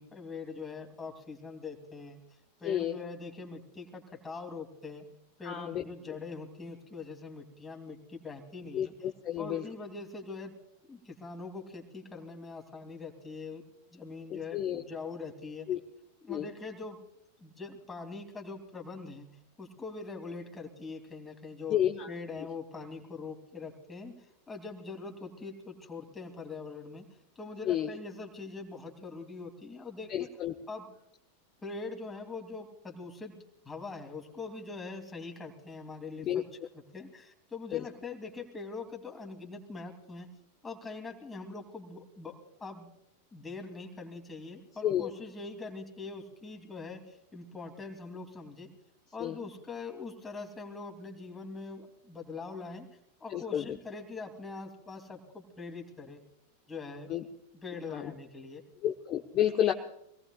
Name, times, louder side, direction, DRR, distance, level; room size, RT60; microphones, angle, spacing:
voice 1, 0.0-2.2 2.6-5.1 5.4-8.9 9.4-10.5 10.8-13.6 13.9-15.7 16.2-17.0 17.4-19.3 19.6-21.8 22.1-27.0 27.3-30.3 30.7-30.9 31.6-36.5 36.7-40.3 40.6-42.9 43.3-48.7 49.1-52.9 53.2-56.2 56.7-57.1 57.5-58.6, left 4 dB, 15° left, 4 dB, 2.9 m, -43 dB
voice 2, 2.6-2.9 5.4-5.8 8.7-9.6 14.3-14.8 15.7-15.8 16.3-16.5 21.7-22.1 27.6-27.9 30.1-30.5 36.3-36.4 37.7-37.8 44.8-45.1 49.2-49.4 53.3-53.7 57.1-57.2 57.9-58.1 58.8-59.7, left 11 dB, 35° left, 3 dB, 1.1 m, -30 dB
25.5 x 18.0 x 2.4 m, 0.79 s
figure-of-eight pair, 90°, 0 cm